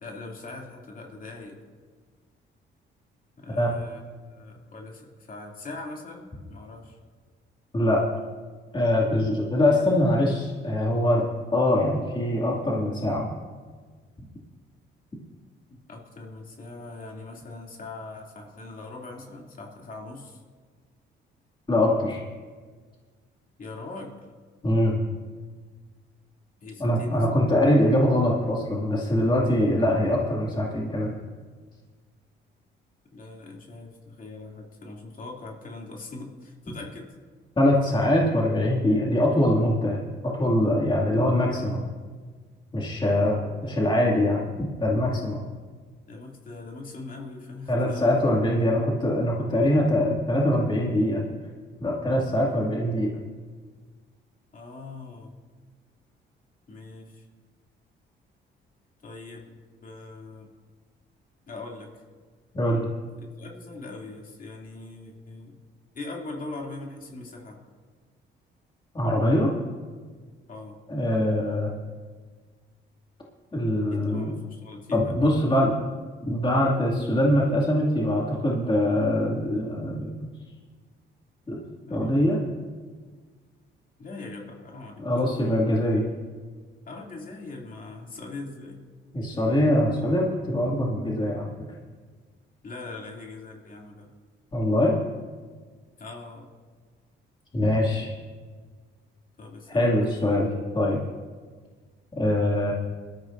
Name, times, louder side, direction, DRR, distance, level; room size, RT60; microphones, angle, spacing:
voice 1, 0.0-1.6 3.4-7.0 15.7-20.4 23.6-24.1 26.6-27.4 33.1-37.1 43.4-43.9 46.1-48.2 54.5-55.3 56.7-57.2 59.0-60.5 61.5-62.0 63.2-65.6 65.9-67.6 70.5-70.8 73.9-75.6 81.8-82.2 84.0-85.1 86.8-88.8 89.3-89.4 92.6-94.1 96.0-96.5 99.4-99.9, left 3 dB, 45° left, -1 dB, 2.7 m, -41 dB
voice 2, 8.7-13.3 21.7-22.2 24.6-25.0 26.8-31.1 37.6-41.9 42.7-45.4 47.7-51.2 51.8-53.1 62.5-62.9 68.9-69.5 70.9-71.7 73.5-74.3 74.9-75.7 76.3-80.3 81.5-81.6 81.9-82.4 85.0-86.0 89.1-91.7 94.5-95.0 97.5-98.1 99.7-101.0 102.2-102.7, left 1 dB, 25° left, -3 dB, 2.4 m, -23 dB
20.5 x 13.5 x 2.6 m, 1.5 s
cardioid pair, 90°, 20 cm